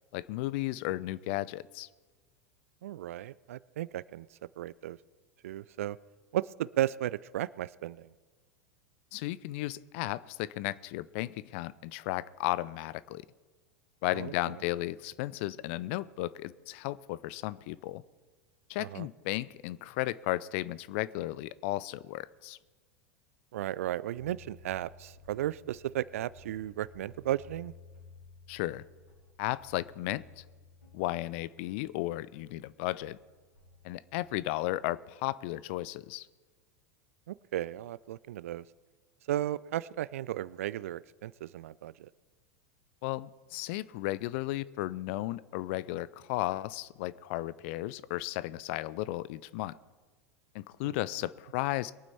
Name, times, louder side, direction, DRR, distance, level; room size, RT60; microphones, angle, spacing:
voice 1, 0.1-1.9 9.1-13.2 14.0-18.0 18.7-22.6 28.5-28.8 29.4-30.4 30.9-33.2 33.8-36.3 43.0-49.7 50.5-51.9, left 17 dB, 50° left, 19 dB, 0.5 m, -34 dB
voice 2, 2.8-4.3 4.6-5.0 5.4-6.0 6.3-8.1 14.2-14.3 18.8-19.1 23.5-27.7 37.3-38.6 39.3-42.1 50.8-50.9, right 13 dB, 60° right, 21 dB, 0.4 m, -35 dB
sound 1, 24.1-32.6 33.0-34.6, left 4 dB, 85° left, 4.0 m, -56 dB
22.5 x 9.0 x 4.3 m, 1.4 s
figure-of-eight pair, 85°, 9 cm